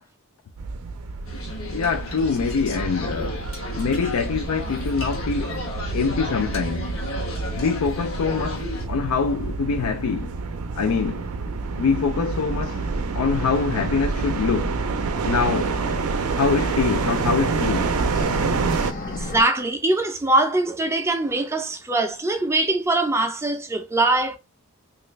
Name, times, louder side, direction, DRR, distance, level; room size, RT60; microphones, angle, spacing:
sound 1, 0.6-18.9, right 4 dB, 80° right, 0.4 m, -28 dB
sound 2, 1.2-8.8, left 1 dB, 70° left, 0.9 m, -34 dB
voice 1, 1.7-3.5 3.7-5.7 5.9-7.0 7.6-10.3 10.8-11.3 11.8-12.8 13.1-14.9 15.2-15.8 16.3-18.0 18.5-18.6, left 5 dB, 85° left, 0.4 m, -24 dB
sound 3, 11.9-19.4, left 2 dB, 40° left, 0.6 m, -36 dB
voice 2, 19.2-24.4, right 2 dB, 10° right, 0.4 m, -22 dB
3.2 x 2.4 x 3.1 m
head